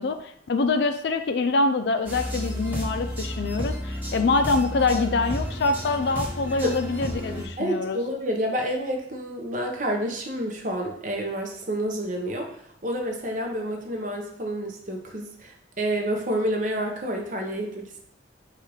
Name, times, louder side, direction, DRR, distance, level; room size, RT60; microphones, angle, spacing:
voice 1, 0.0-8.0, left 3 dB, 65° left, 8 dB, 0.4 m, -25 dB
sound 1, 2.0-7.4, equal, 10° right, 1.0 m, -32 dB
voice 2, 7.6-18.0, equal, 45° right, 1 dB, 0.7 m, -29 dB
4.5 x 2.4 x 4.8 m, 0.68 s
head